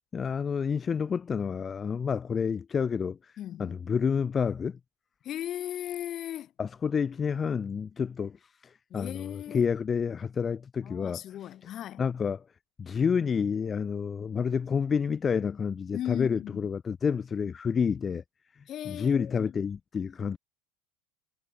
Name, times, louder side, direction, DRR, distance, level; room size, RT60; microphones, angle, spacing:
voice 1, 0.1-3.3 3.6-4.8 6.6-11.5 12.0-12.4 12.8-18.2 18.6-20.4, left 6 dB, 30° left, 0.5 m, -29 dB
voice 2, 3.4-3.8 5.2-6.5 8.9-9.6 10.8-12.0 15.9-16.7 18.7-19.6, left 12 dB, 45° left, 4.2 m, -37 dB
hypercardioid pair, 80°, 0 cm